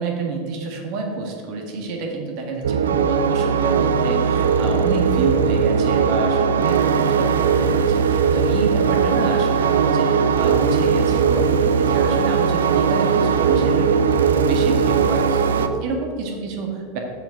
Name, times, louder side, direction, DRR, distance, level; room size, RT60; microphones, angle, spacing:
voice 1, 0.0-17.0, right 3 dB, 55° right, 2 dB, 1.8 m, -28 dB
sound 1, 2.6-15.7, right 6 dB, 80° right, 0.5 m, -19 dB
7.3 x 5.3 x 6.5 m, 2.1 s
hypercardioid pair, 85°, 0 cm